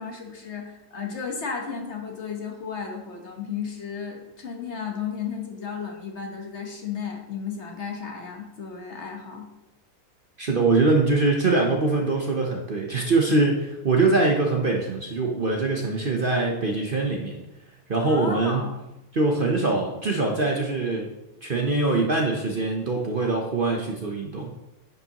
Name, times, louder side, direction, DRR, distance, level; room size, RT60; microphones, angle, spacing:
voice 1, 0.0-9.5 18.0-18.7, left 6 dB, 50° left, 1 dB, 1.3 m, -34 dB
voice 2, 10.4-17.4 17.9-18.6 19.1-21.1 21.4-24.5, right 3 dB, 40° right, 0 dB, 0.9 m, -23 dB
10.0 x 6.7 x 2.9 m, 0.94 s
omnidirectional pair, 1.6 m